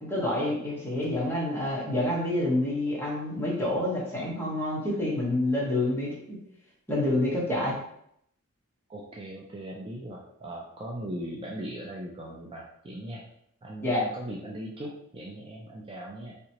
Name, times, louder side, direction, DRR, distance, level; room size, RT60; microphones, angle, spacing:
voice 1, 0.0-6.4 6.9-7.8 13.8-14.1, left 1 dB, 10° left, -5 dB, 1.0 m, -28 dB
voice 2, 8.9-13.2 13.6-16.3, right 1 dB, 25° right, -2 dB, 0.3 m, -39 dB
3.3 x 2.9 x 2.8 m, 0.72 s
head